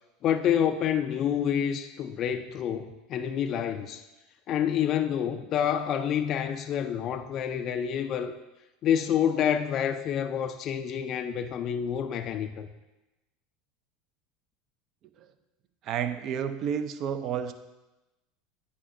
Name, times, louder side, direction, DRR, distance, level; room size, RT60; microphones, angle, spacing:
voice 1, 0.2-4.0 4.5-8.3 8.8-12.7, left 9 dB, 50° left, 8 dB, 0.3 m, -28 dB
voice 2, 15.8-17.5, right 8 dB, 50° right, 10 dB, 0.5 m, -30 dB
8.3 x 4.9 x 2.6 m, 1.0 s
hypercardioid pair, 80°, 0 cm